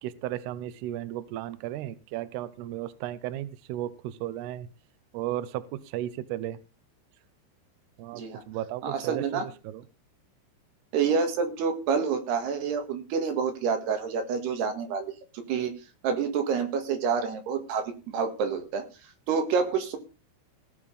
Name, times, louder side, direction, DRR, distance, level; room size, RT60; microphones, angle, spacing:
voice 1, 0.0-4.7 5.1-6.6 8.0-9.8, right 13 dB, 80° right, 15 dB, 2.3 m, -35 dB
voice 2, 8.8-9.5 10.9-15.1 15.5-15.8 16.0-18.8 19.3-20.0, right 6 dB, 65° right, 6 dB, 3.6 m, -28 dB
17.0 x 7.0 x 5.5 m, 0.31 s
omnidirectional pair, 5.5 m